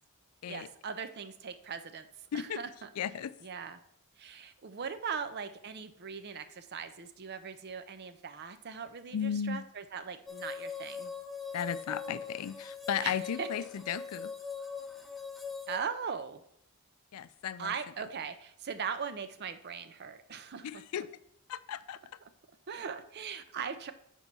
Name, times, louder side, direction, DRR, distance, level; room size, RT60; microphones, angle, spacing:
voice 1, 0.5-2.1 2.3-2.9 3.4-3.8 4.2-11.1 13.0-13.5 15.7-16.4 17.6-21.1 22.7-23.9, right 6 dB, 50° right, 10 dB, 0.6 m, -40 dB
voice 2, 3.0-3.3 9.1-9.6 11.5-14.3 17.1-17.7 20.6-21.1 21.5-22.0, left 8 dB, 85° left, 15 dB, 0.4 m, -35 dB
sound 1, 10.3-15.8, left 5 dB, ahead, 0.5 m, -41 dB
5.4 x 4.5 x 6.0 m, 0.70 s
head